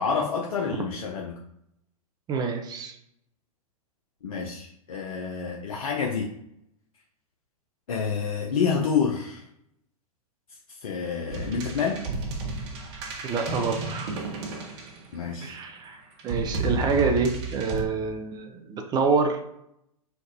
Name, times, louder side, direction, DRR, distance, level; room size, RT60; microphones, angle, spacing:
voice 1, 0.0-1.4 4.2-6.3 7.9-9.5 10.7-12.1 15.1-15.6, left 6 dB, 65° left, 0 dB, 0.5 m, -28 dB
voice 2, 2.3-2.9 13.2-14.2 15.4-16.0 16.2-19.4, right 4 dB, 20° right, 5 dB, 0.4 m, -27 dB
sound 1, 11.3-15.4 16.2-17.8, right 3 dB, 50° right, 0.8 m, -32 dB
4.5 x 2.4 x 2.7 m, 0.77 s
figure-of-eight pair, 100°, 19 cm